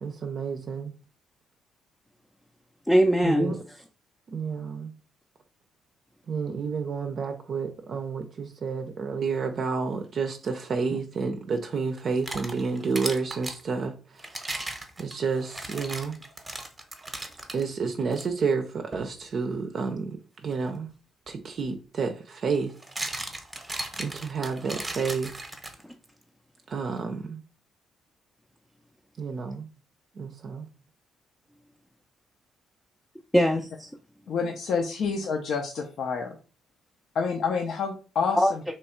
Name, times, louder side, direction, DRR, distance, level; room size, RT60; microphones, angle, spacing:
voice 1, 0.0-0.9 3.2-3.6 4.3-4.9 6.3-14.3 15.0-16.2 17.5-20.2 20.4-20.9 21.3-22.7 24.0-25.3 26.7-27.4 29.2-29.7 30.2-30.7, right 5 dB, 55° right, 0.5 m, -30 dB
voice 2, 2.9-3.8 10.9-11.0 25.8-25.9 33.3-33.9 38.3-38.7, equal, 5° left, 0.4 m, -23 dB
sound 1, 12.0-13.6 14.2-17.6 18.1-18.3 18.9-19.1 21.3-21.4 22.5-26.0, right 2 dB, 15° right, 0.8 m, -36 dB
voice 3, 34.3-36.4 37.1-38.4, left 5 dB, 65° left, 0.5 m, -28 dB
3.0 x 2.3 x 4.3 m
cardioid pair, 90°, 0 cm